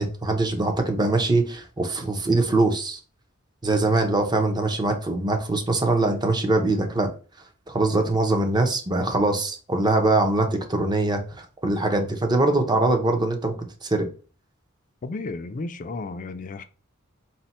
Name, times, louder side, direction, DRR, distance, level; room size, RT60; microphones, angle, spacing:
voice 1, 0.0-3.0 3.6-7.1 7.7-13.5 13.8-14.1, right 2 dB, 20° right, 0.6 m, -22 dB
voice 2, 15.0-16.6, left 3 dB, 40° left, 0.4 m, -33 dB
4.2 x 2.1 x 4.1 m
head